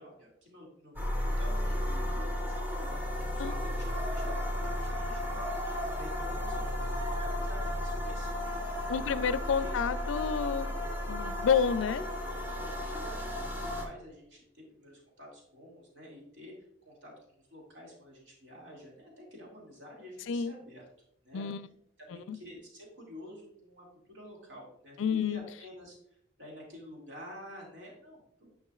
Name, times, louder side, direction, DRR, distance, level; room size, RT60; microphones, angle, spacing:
voice 1, 0.0-2.9 3.3-8.4 8.9-9.2 9.6-9.8 10.1-10.3 10.6-10.7 12.0-12.1 12.6-16.5 16.8-20.8 21.2-21.5 22.0-28.6, equal, 65° right, 2.3 m, -49 dB
sound 1, 1.0-13.9, left 1 dB, 10° right, 1.9 m, -34 dB
sound 2, 2.8-3.2 4.0-6.6 6.9-7.9 8.3-9.2, right 1 dB, 30° right, 0.8 m, -45 dB
voice 2, 8.9-10.7 11.1-12.0 20.3-20.5 21.3-21.7 22.3-22.4 25.0-25.4, left 6 dB, 75° left, 0.4 m, -29 dB
9.7 x 5.5 x 2.4 m
head